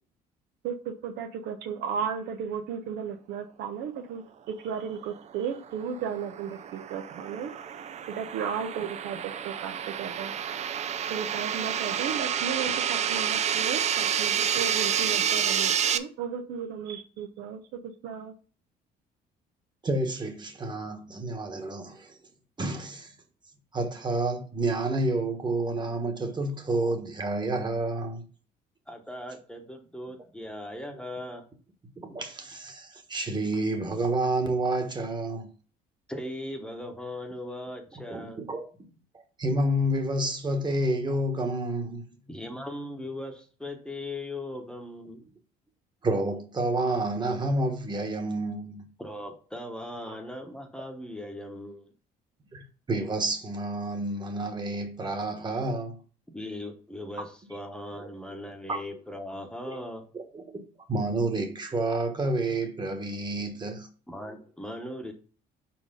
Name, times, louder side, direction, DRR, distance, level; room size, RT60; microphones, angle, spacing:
voice 1, 0.6-7.6 8.1-10.3 11.1-18.3, right 7 dB, 80° right, 0.8 m, -35 dB
sound 1, 5.5-16.0, right 8 dB, 40° right, 0.5 m, -29 dB
voice 2, 19.8-22.2 22.6-23.1 23.7-28.2 32.0-35.5 38.1-38.9 39.4-42.1 46.0-48.9 50.1-50.2 52.5-56.0 58.0-58.1 58.7-58.8 59.7-59.8 60.1-60.6 60.9-63.9, right 2 dB, 25° right, 1.4 m, -29 dB
voice 3, 28.9-31.4 36.1-38.4 42.3-45.2 49.0-51.9 56.3-60.0 64.1-65.1, left 1 dB, 5° left, 1.1 m, -39 dB
4.9 x 4.4 x 5.1 m
cardioid pair, 110°, 17 cm